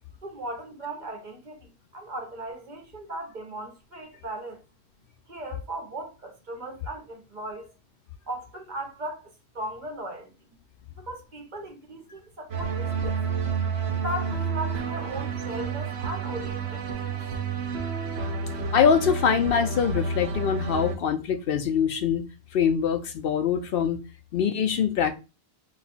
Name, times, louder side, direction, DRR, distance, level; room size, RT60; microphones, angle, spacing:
voice 1, 0.2-4.6 5.3-7.7 8.3-10.3 11.0-13.2 13.9-17.1, right 1 dB, 50° right, 1.0 m, -37 dB
sound 1, 12.5-21.0, right 5 dB, 80° right, 1.0 m, -30 dB
voice 2, 18.7-22.3 22.5-24.0 24.3-25.1, left 7 dB, 65° left, 0.7 m, -23 dB
4.1 x 2.3 x 4.1 m
omnidirectional pair, 1.1 m